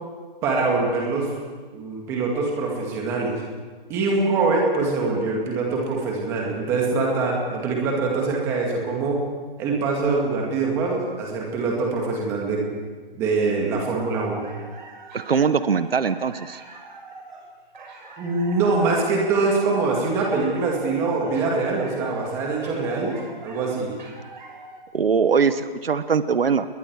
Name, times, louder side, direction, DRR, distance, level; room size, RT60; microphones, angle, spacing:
voice 1, 0.4-1.3 1.7-3.4 3.9-9.2 9.6-12.7 13.1-14.4 18.2-23.2 23.4-24.0, right 3 dB, 10° right, -1 dB, 2.1 m, -23 dB
sound 1, 14.1-24.8, right 3 dB, 55° right, 5.8 m, -43 dB
voice 2, 15.1-16.6 24.9-26.7, right 6 dB, 75° right, 12 dB, 1.1 m, -21 dB
29.5 x 21.5 x 4.8 m, 1.4 s
hypercardioid pair, 175°, 29 cm